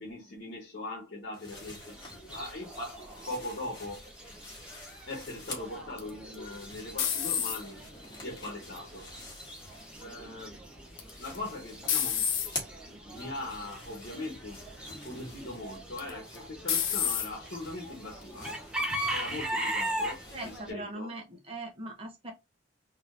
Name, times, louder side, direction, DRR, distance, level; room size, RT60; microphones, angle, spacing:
voice 1, 0.0-4.0 5.1-7.8 8.2-9.1 10.0-10.6 11.2-12.3 12.9-18.5 19.1-21.1, left 2 dB, 60° left, 1.1 m, -41 dB
sound 1, 1.3-5.9 6.2-10.4 10.7-20.6, left 2 dB, 25° left, 1.6 m, -48 dB
Chicken rooster / Bird, 1.5-20.7, right 1 dB, 5° right, 0.8 m, -40 dB
sound 2, 6.0-7.9 8.5-9.0 11.0-11.4 11.9-12.5 13.3-13.5 14.0-14.1 16.0-16.4 16.7-17.3, left 8 dB, 90° left, 0.9 m, -29 dB
voice 2, 20.3-22.3, right 2 dB, 30° right, 1.1 m, -40 dB
3.7 x 2.9 x 2.5 m
head